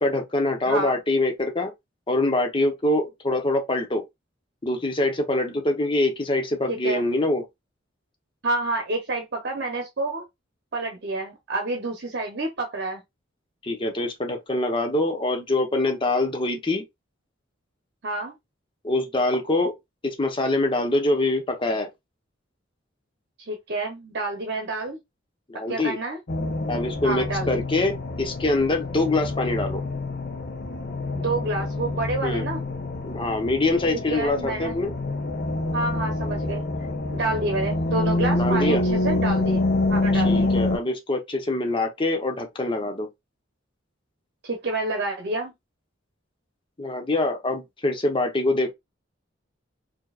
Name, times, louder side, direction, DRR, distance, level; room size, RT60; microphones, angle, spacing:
voice 1, 0.0-1.7 2.1-4.0 4.6-7.4 13.6-16.8 18.8-19.7 20.0-21.9 25.5-26.0 26.7-29.8 32.2-32.5 33.0-34.9 38.3-38.8 40.1-43.1 46.8-48.7, left 2 dB, 25° left, 0.9 m, -24 dB
voice 2, 0.7-1.0 6.7-7.0 8.4-10.2 10.7-13.0 18.0-18.3 23.4-25.0 25.7-26.2 27.0-27.6 31.1-32.6 34.1-34.8 35.7-39.6 39.9-40.5 44.4-45.5, right 2 dB, 60° right, 0.9 m, -28 dB
sound 1, 26.3-40.8, left 2 dB, 55° left, 0.8 m, -26 dB
4.5 x 2.8 x 2.4 m
head